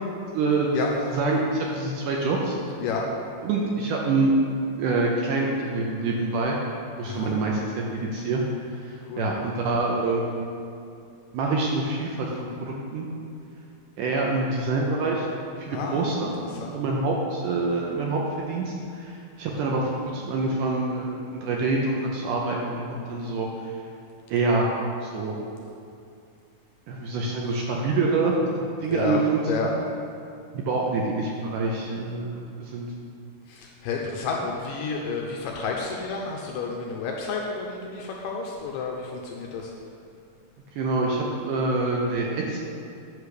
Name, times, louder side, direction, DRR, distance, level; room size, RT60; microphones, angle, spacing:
voice 1, 0.3-0.7 1.1-2.6 3.4-4.3 4.7-6.6 7.0-7.8 8.1-8.4 8.7-10.5 11.3-13.1 14.0-15.3 15.6-16.4 16.7-23.7 24.3-24.7 25.0-25.4 26.9-28.3 28.8-29.7 30.5-32.9 40.8-42.6, right 3 dB, 75° right, -2 dB, 2.0 m, -26 dB
voice 2, 7.0-7.5 9.1-9.3 15.7-16.1 16.5-16.8 28.9-29.2 29.5-29.7 33.5-39.7, left 5 dB, 80° left, 0 dB, 2.0 m, -31 dB
8.4 x 4.9 x 6.5 m, 2.4 s
omnidirectional pair, 4.4 m